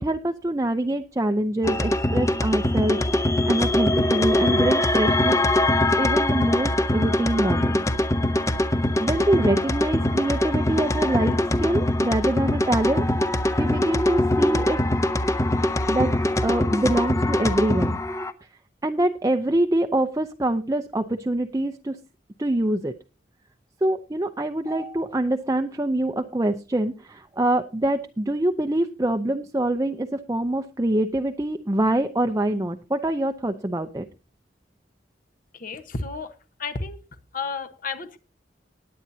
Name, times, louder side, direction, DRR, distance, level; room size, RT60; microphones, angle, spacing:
voice 1, 0.0-5.4 6.0-7.8 9.0-13.1 13.6-14.8 15.9-16.1 16.4-18.0 18.8-22.0 22.4-22.9 23.8-34.1, right 1 dB, 20° right, 5 dB, 0.6 m, -25 dB
sound 1, 1.6-18.3, left 1 dB, 15° left, 0.8 m, -22 dB
voice 2, 35.5-37.0 37.3-38.2, left 4 dB, 50° left, 9 dB, 1.2 m, -32 dB
19.5 x 8.8 x 2.8 m, 0.31 s
head